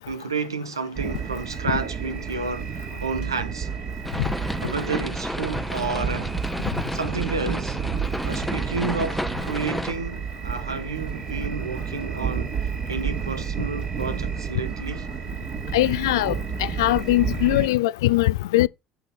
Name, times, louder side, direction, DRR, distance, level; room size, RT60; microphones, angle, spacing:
voice 1, 0.1-3.7 4.6-6.4 6.9-7.8 8.2-15.1, right 4 dB, 90° right, 0.9 m, -31 dB
sound 1, 0.9-17.7, right 6 dB, 40° right, 2.2 m, -31 dB
sound 2, 4.0-9.9, left 1 dB, 5° left, 0.8 m, -31 dB
voice 2, 15.7-18.7, left 17 dB, 75° left, 0.3 m, -21 dB
7.2 x 4.0 x 5.5 m
figure-of-eight pair, 65°, 2 cm